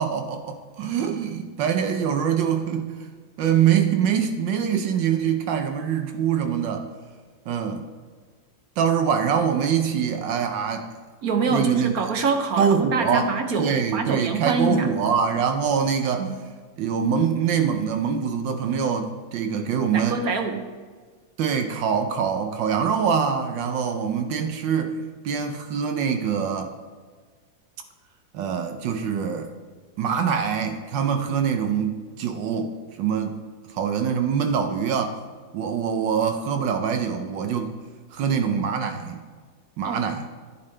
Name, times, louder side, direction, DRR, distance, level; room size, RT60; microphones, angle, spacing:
voice 1, 0.0-2.9 3.4-6.9 7.5-7.8 8.8-10.9 11.5-11.9 12.6-13.3 13.6-16.3 16.8-20.2 21.4-24.9 25.2-26.7 28.3-29.5 30.0-33.4 33.7-35.2 35.5-37.7 38.1-39.2 39.8-40.3, right 7 dB, 75° right, 6 dB, 1.5 m, -24 dB
voice 2, 11.2-14.9 16.2-16.3 19.9-20.7 39.8-40.0, right 4 dB, 60° right, 6 dB, 1.0 m, -25 dB
11.0 x 10.5 x 3.3 m, 1.5 s
omnidirectional pair, 2.0 m